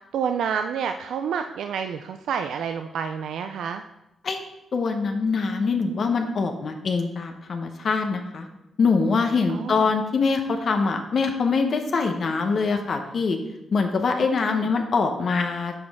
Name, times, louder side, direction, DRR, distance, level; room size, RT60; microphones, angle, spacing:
voice 1, 0.1-3.8 9.5-9.9 14.5-14.7, right 7 dB, 80° right, 7 dB, 0.3 m, -29 dB
voice 2, 4.7-8.5 8.8-13.4 13.7-15.7, left 4 dB, 55° left, 4 dB, 0.8 m, -24 dB
9.4 x 5.2 x 3.5 m, 0.89 s
cardioid pair, 75°, 0 cm